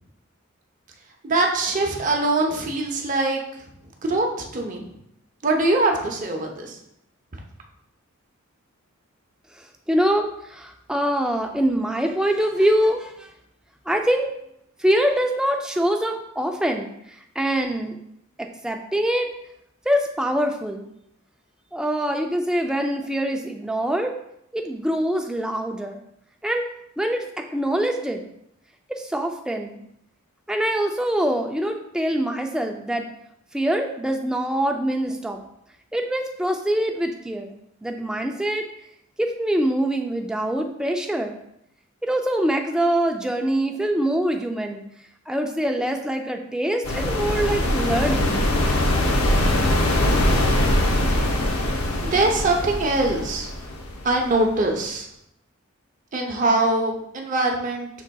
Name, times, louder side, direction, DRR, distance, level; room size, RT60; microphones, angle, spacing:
voice 1, 1.2-3.6 4.0-4.3 4.5-4.9 5.4-6.8 52.0-53.5 54.0-55.1 56.1-57.9, right 2 dB, 35° right, 1 dB, 0.7 m, -22 dB
voice 2, 9.6-13.3 13.9-14.3 14.8-18.0 18.6-19.3 19.9-20.9 21.7-24.1 24.5-26.0 26.4-26.7 27.0-28.2 28.9-29.8 30.5-33.1 33.5-35.4 35.9-37.5 37.8-38.7 39.2-41.3 42.0-44.8 45.3-48.5, right 1 dB, 5° right, 3 dB, 0.3 m, -24 dB
sound 1, 46.8-54.5, left 1 dB, 80° left, 0.7 m, -22 dB
6.0 x 3.9 x 2.3 m, 0.78 s
head